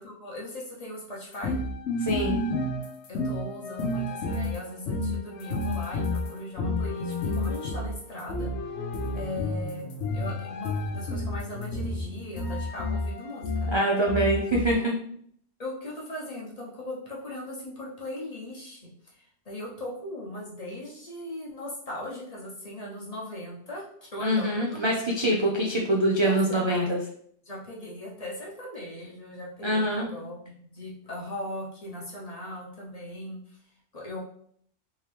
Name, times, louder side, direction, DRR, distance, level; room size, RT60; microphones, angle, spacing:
voice 1, 0.0-1.6 3.1-8.5 9.1-9.9 10.1-13.8 14.8-14.9 15.6-23.8 24.1-24.8 26.2-26.9 27.4-33.6 33.9-34.2, left 1 dB, 35° left, -4 dB, 1.0 m, -39 dB
sound 1, 1.3-14.7, left 2 dB, 75° left, 0.9 m, -31 dB
voice 2, 2.0-2.4 13.7-14.9 24.2-27.0 29.6-30.1, right 1 dB, 40° right, -2 dB, 0.4 m, -24 dB
3.7 x 2.9 x 3.3 m, 0.63 s
omnidirectional pair, 1.2 m